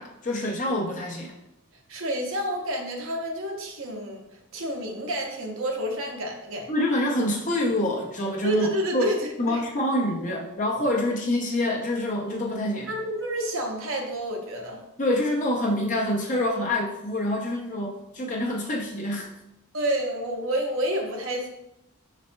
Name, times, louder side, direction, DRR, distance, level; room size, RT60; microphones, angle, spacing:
voice 1, 0.0-1.3 6.7-9.1 9.4-12.9 15.0-19.3, left 1 dB, 35° left, 0 dB, 0.6 m, -26 dB
voice 2, 1.9-4.2 4.5-6.7 8.4-9.7 12.9-14.8 19.7-21.5, right 1 dB, 60° right, 2 dB, 0.8 m, -29 dB
5.3 x 4.1 x 2.2 m, 0.85 s
head